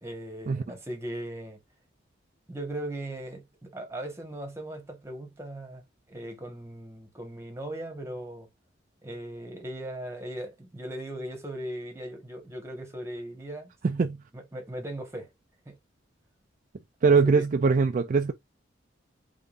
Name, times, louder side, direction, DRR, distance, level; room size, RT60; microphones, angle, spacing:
voice 1, 0.0-1.6 2.5-8.5 9.0-13.7 14.3-15.3 15.6-15.8 17.0-17.4, right 1 dB, 15° right, 1.3 m, -38 dB
voice 2, 13.8-14.2 17.0-18.3, right 4 dB, 45° right, 0.4 m, -22 dB
3.8 x 3.6 x 2.5 m
head